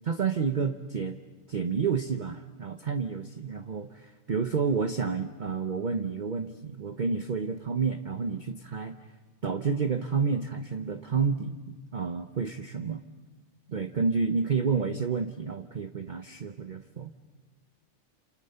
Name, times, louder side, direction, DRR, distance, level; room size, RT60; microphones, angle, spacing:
voice 1, 0.0-1.2 1.5-9.0 9.4-13.0 13.7-17.1, right 5 dB, 40° right, 7 dB, 0.9 m, -30 dB
28.5 x 28.0 x 5.6 m, 1.4 s
omnidirectional pair, 1.4 m